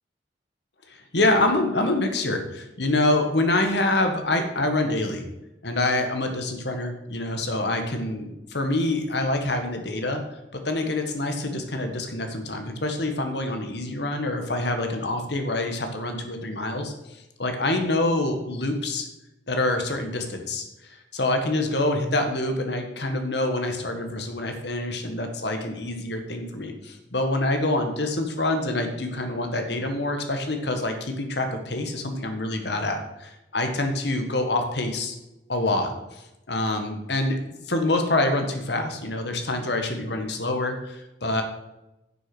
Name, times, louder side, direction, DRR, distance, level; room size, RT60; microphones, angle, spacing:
voice 1, 0.9-5.2 5.6-10.4 10.6-19.1 19.5-35.1 35.5-37.4 37.7-41.4, left 2 dB, 65° left, 5 dB, 1.6 m, -26 dB
11.0 x 6.5 x 6.2 m, 0.95 s
head